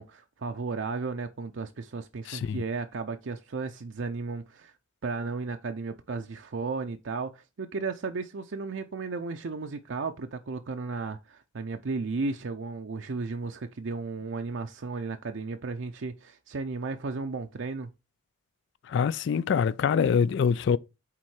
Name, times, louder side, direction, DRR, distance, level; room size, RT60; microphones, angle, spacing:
voice 1, 0.0-4.7 5.0-17.9, right 4 dB, 65° right, 0.6 m, -34 dB
voice 2, 2.3-2.6 18.8-20.8, left 6 dB, 60° left, 0.3 m, -25 dB
8.5 x 3.7 x 4.7 m
head